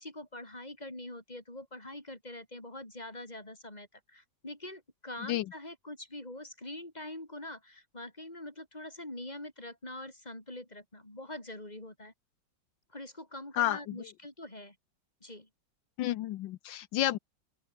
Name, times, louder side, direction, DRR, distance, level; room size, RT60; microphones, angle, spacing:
voice 1, 0.0-12.1 12.9-14.8 15.2-15.5, left 1 dB, 20° left, 5.6 m, -44 dB
voice 2, 16.0-17.2, left 13 dB, 85° left, 1.4 m, -30 dB
open air
omnidirectional pair, 2.0 m